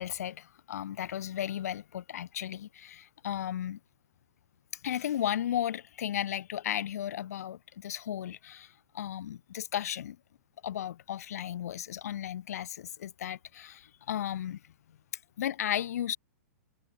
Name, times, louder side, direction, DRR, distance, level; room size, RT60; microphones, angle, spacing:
voice 1, 0.0-3.8 4.7-10.2 10.6-14.7 15.4-16.2, left 11 dB, 70° left, 4.0 m, -35 dB
hypercardioid pair, 140°, 9 cm